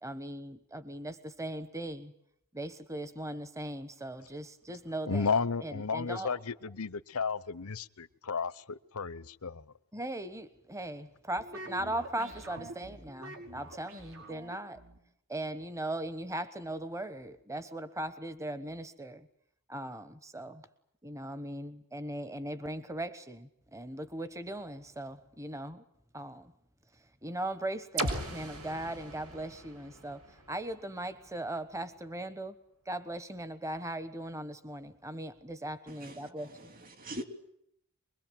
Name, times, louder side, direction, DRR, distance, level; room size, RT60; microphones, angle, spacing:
voice 1, 0.0-2.1 2.5-5.3 5.6-6.4 9.9-14.8 15.3-19.3 19.7-20.6 21.0-25.8 26.1-26.5 27.2-32.6 32.9-36.7, right 1 dB, 15° right, 12 dB, 1.2 m, -39 dB
voice 2, 5.1-9.6, left 5 dB, 80° left, 18 dB, 0.9 m, -33 dB
sound 1, 11.4-15.0, right 1 dB, 70° right, 5.4 m, -46 dB
sound 2, 28.0-31.8, right 2 dB, 90° right, 6.2 m, -39 dB
voice 3, 35.9-37.2, equal, 40° right, 8 dB, 3.0 m, -43 dB
24.5 x 22.0 x 9.3 m, 0.73 s
head